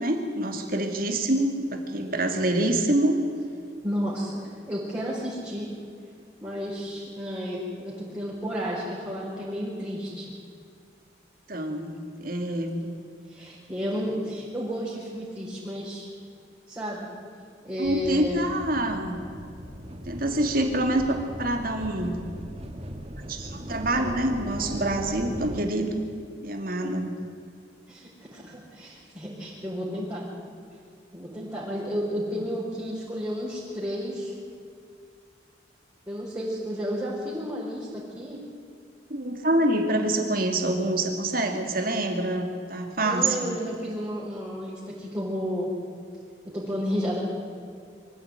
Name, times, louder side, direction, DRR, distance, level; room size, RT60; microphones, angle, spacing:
voice 1, 0.0-3.2 11.5-12.7 17.8-19.2 20.1-22.2 23.3-26.1 26.4-27.2 39.1-43.6, right 1 dB, 50° right, 4 dB, 2.7 m, -26 dB
voice 2, 3.8-4.3 4.7-5.7 6.4-10.3 12.7-12.8 13.3-16.1 16.7-17.1 17.6-18.4 27.9-30.3 31.1-34.3 36.1-38.4 43.0-45.7 46.5-47.2, equal, 15° right, -8 dB, 4.8 m, -32 dB
sound 1, 17.8-25.6, equal, 35° right, 1.6 m, -39 dB
24.0 x 14.5 x 9.2 m, 2.3 s
head